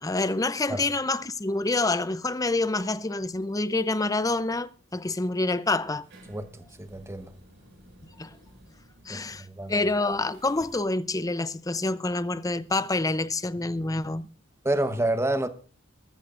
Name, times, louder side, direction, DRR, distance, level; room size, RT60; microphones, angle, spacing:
voice 1, 0.0-6.1 8.2-8.4 9.0-14.3, left 2 dB, 20° left, 0.6 m, -27 dB
sound 1, 5.8-10.8, equal, 60° right, 5.8 m, -54 dB
voice 2, 6.3-7.3 9.1-9.8 14.6-15.5, right 1 dB, 15° right, 1.0 m, -29 dB
20.5 x 13.5 x 2.5 m
head